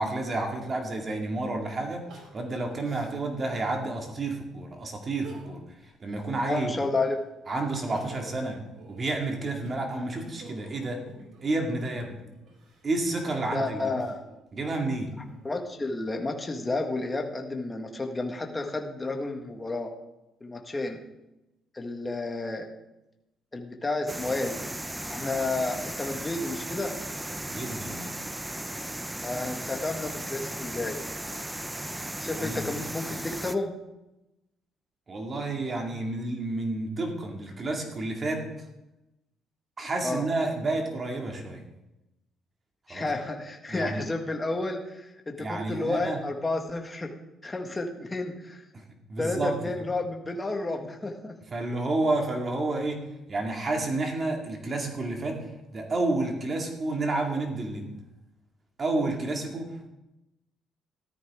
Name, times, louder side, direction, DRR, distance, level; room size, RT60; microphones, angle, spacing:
voice 1, 0.0-5.6 6.0-6.7 7.5-8.6 8.9-11.0 11.4-12.1 12.8-13.9 14.5-15.1 27.4-28.2 32.4-32.6 35.1-38.5 39.8-41.6 42.9-43.0 43.7-44.0 45.4-46.2 48.7-48.8 49.1-49.6 51.5-57.9 58.8-59.9, right 2 dB, 35° right, 2 dB, 2.3 m, -30 dB
Crying sobbing, 2.1-3.8 4.3-4.4 5.1-5.8 6.1-7.2 7.6-11.6 12.3-14.4 15.0-15.8, right 3 dB, 65° right, 4.9 m, -49 dB
voice 2, 6.4-7.2 13.5-14.2 15.4-19.9 20.4-21.0 21.7-22.7 23.5-24.6 25.1-26.9 29.2-31.0 32.2-33.7 40.0-40.2 42.9-47.1 47.4-48.6 49.2-51.4, left 2 dB, 20° left, 3 dB, 1.7 m, -31 dB
sound 1, 24.1-33.6, right 1 dB, 10° right, 0.6 m, -36 dB
14.5 x 13.0 x 3.7 m, 0.95 s
cardioid pair, 115°, 0 cm